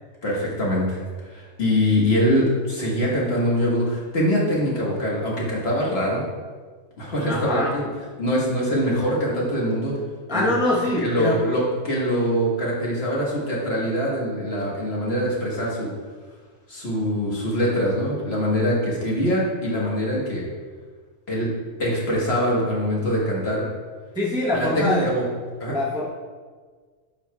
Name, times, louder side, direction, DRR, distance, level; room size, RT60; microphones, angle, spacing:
voice 1, 0.2-6.2 7.0-7.9 8.2-9.9 10.3-10.5 11.0-15.9 16.7-20.4 21.3-21.5 21.8-23.6 24.5-25.2 25.6-25.8, equal, 50° left, -4 dB, 1.6 m, -23 dB
voice 2, 7.3-7.7 10.3-11.4 24.1-25.1 25.7-26.0, left 1 dB, 5° right, -5 dB, 0.7 m, -23 dB
9.8 x 4.8 x 2.3 m, 1.5 s
omnidirectional pair, 1.4 m